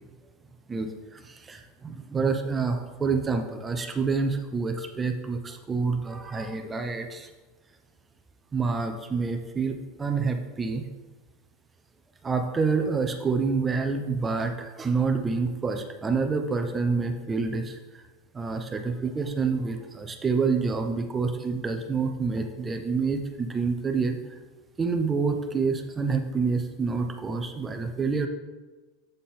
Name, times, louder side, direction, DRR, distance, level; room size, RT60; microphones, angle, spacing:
voice 1, 0.7-7.3 8.5-10.9 12.2-18.0 18.3-24.2 24.8-28.3, right 4 dB, 20° right, 6 dB, 0.6 m, -27 dB
7.8 x 3.7 x 4.2 m, 1.2 s
supercardioid pair, 125°, 0 cm